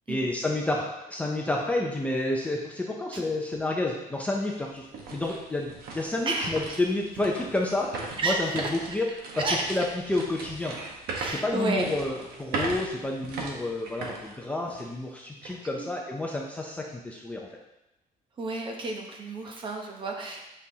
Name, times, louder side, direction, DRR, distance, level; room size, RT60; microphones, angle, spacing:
voice 1, 0.1-9.1 9.4-10.7 11.2-17.5, left 2 dB, 10° left, -2 dB, 0.5 m, -30 dB
sound 1, 3.5-3.6 4.1-15.0 15.4-15.6 16.1-16.5, right 3 dB, 75° right, 1.3 m, -39 dB
voice 2, 6.3-6.8 8.2-8.4 9.4-9.6 11.1-11.9 15.8-15.9 18.4-20.4, right 3 dB, 30° right, 2 dB, 0.9 m, -31 dB
8.4 x 5.5 x 2.8 m, 0.91 s
cardioid pair, 180°, 16 cm